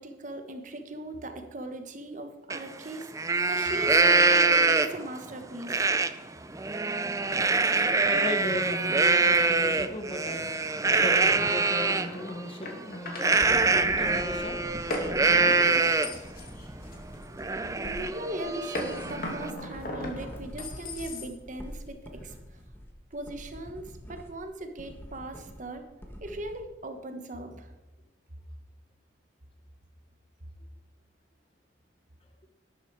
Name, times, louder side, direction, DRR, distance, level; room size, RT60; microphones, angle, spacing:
voice 1, 0.0-3.1 3.5-5.9 17.8-22.3 23.1-25.9 26.2-27.7, right 1 dB, 45° right, 6 dB, 1.3 m, -39 dB
Livestock farm animals working animals, 2.5-2.6 3.0-5.1 5.7-6.1 6.5-12.1 13.2-16.3 16.7-16.8 17.1-19.5, right 3 dB, 15° right, 0.5 m, -24 dB
voice 2, 8.1-10.5 11.0-14.6, left 1 dB, 30° left, 7 dB, 1.3 m, -36 dB
sound 1, 10.8-13.4 14.9-17.5 18.7-21.6, left 1 dB, 50° left, 2.3 m, -38 dB
sound 2, 13.4-26.6, equal, 10° left, 1.5 m, -46 dB
12.0 x 11.0 x 4.7 m, 1.1 s
head